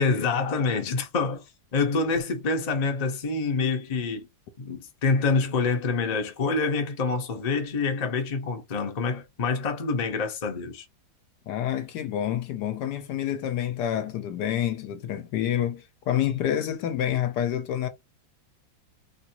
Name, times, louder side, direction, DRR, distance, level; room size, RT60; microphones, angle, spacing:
voice 1, 0.0-1.4 1.7-4.3 4.6-10.9, left 4 dB, 55° left, 0.4 m, -26 dB
voice 2, 11.5-17.9, left 10 dB, 75° left, 1.1 m, -28 dB
3.7 x 2.4 x 2.8 m
omnidirectional pair, 2.0 m